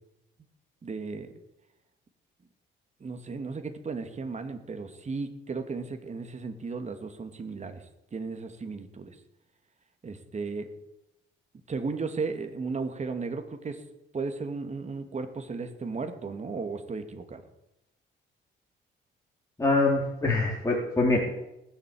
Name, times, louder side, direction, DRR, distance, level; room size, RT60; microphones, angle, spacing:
voice 1, 0.8-1.3 3.0-9.2 10.0-10.7 11.7-13.8 14.1-17.4, right 4 dB, 35° right, 7 dB, 2.5 m, -35 dB
voice 2, 19.6-21.2, left 2 dB, 15° left, -3 dB, 3.6 m, -24 dB
18.5 x 8.2 x 8.7 m, 0.87 s
cardioid pair, 90°, 20 cm